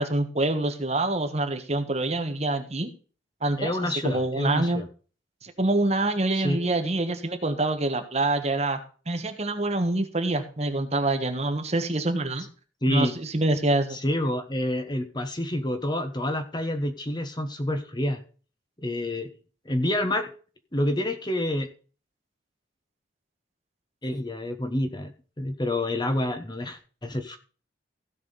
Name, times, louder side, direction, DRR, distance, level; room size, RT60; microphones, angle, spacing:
voice 1, 0.0-2.9 3.4-4.8 5.4-8.8 9.1-12.5 12.9-14.0, right 2 dB, 35° right, 6 dB, 1.4 m, -26 dB
voice 2, 3.6-4.9 6.3-6.6 12.8-13.1 13.9-18.2 18.8-19.3 19.7-20.3 20.7-21.7 24.0-25.1 25.4-27.4, left 1 dB, 20° left, 7 dB, 1.0 m, -28 dB
16.0 x 5.9 x 4.0 m, 0.38 s
head